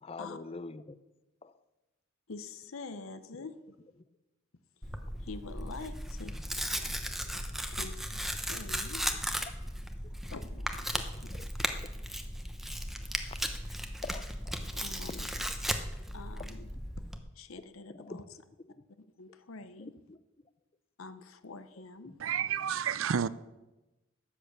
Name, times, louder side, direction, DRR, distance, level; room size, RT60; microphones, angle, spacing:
voice 1, 0.0-1.0 1.4-1.5 3.4-3.5 6.3-6.4 6.8-6.9 9.1-9.5 10.9-11.5 13.4-13.6 14.0-14.6 16.4-16.5 17.6-18.2 18.6-18.7 19.8-20.2 22.0-22.2, left 3 dB, 30° left, 0.5 m, -46 dB
voice 2, 2.3-3.5 5.3-6.4 6.6-7.0 7.4-7.5 7.7-9.2 10.3-11.1 14.7-15.3 16.1-16.7 17.4-18.2 19.2-19.9 21.0-22.1, left 3 dB, 85° left, 0.8 m, -46 dB
Tearing, 4.8-17.2, equal, ahead, 0.8 m, -36 dB
voice 3, 22.2-23.3, right 8 dB, 75° right, 0.5 m, -30 dB
13.0 x 8.8 x 6.8 m
head